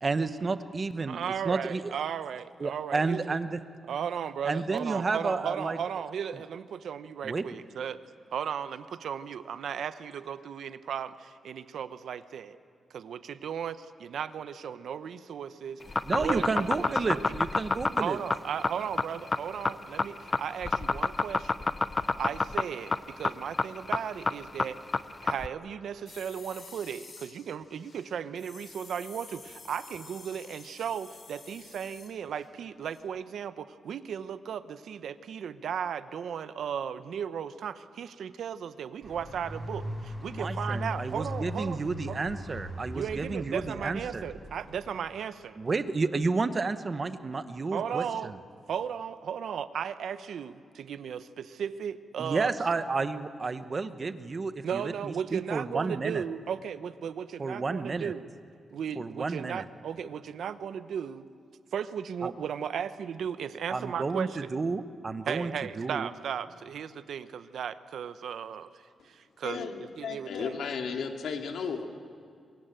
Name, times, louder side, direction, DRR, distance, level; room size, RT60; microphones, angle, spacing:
voice 1, 0.0-1.9 2.6-3.6 4.4-5.8 7.2-7.4 16.0-18.2 40.3-44.3 45.6-48.4 52.2-56.2 57.4-58.1 59.0-59.6 62.2-62.3 63.7-66.1, right 4 dB, 30° right, 11 dB, 0.9 m, -31 dB
voice 2, 1.1-3.4 3.9-8.0 8.3-12.6 12.9-15.8 16.1-17.3 18.0-21.7 22.2-24.8 25.2-41.8 42.1-42.2 42.9-45.6 47.7-48.3 48.7-52.5 54.6-58.3 58.7-61.3 61.7-64.5 65.3-70.6, right 8 dB, 75° right, 12 dB, 0.9 m, -36 dB
sound 1, 15.8-25.5, left 3 dB, 25° left, 0.6 m, -28 dB
sound 2, 26.1-32.5 32.8-33.0, left 4 dB, 40° left, 3.1 m, -50 dB
sound 3, 39.0-44.9, equal, 10° right, 6.9 m, -39 dB
voice 3, 69.4-71.9, left 5 dB, 80° left, 4 dB, 2.2 m, -34 dB
24.0 x 21.5 x 9.0 m, 2.3 s
wide cardioid pair, 155°, 0 cm